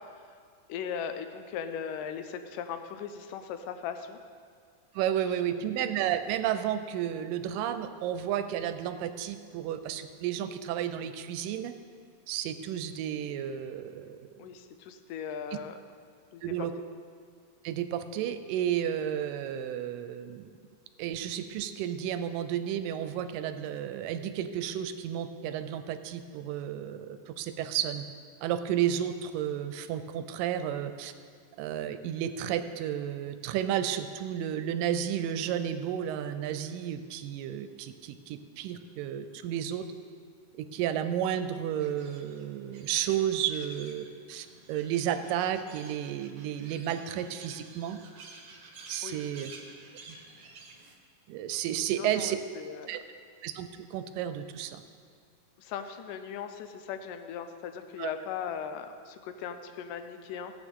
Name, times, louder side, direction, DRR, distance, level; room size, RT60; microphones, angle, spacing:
voice 1, 0.7-4.2 5.5-5.6 14.4-15.8 16.3-16.4 49.0-49.2 52.0-53.0 55.6-60.5, left 7 dB, 75° left, 8 dB, 2.1 m, -38 dB
voice 2, 5.0-11.7 12.3-14.2 16.4-16.7 17.6-20.5 21.0-28.0 28.4-31.1 31.6-39.8 40.5-48.0 48.9-49.5 50.1-50.2 51.3-52.4 52.9-53.0 53.4-54.8 58.0-58.1, right 10 dB, 80° right, 10 dB, 2.1 m, -32 dB
sound 1, 41.8-51.0, right 3 dB, 60° right, 1.5 m, -51 dB
16.5 x 8.8 x 3.6 m, 2.1 s
omnidirectional pair, 4.1 m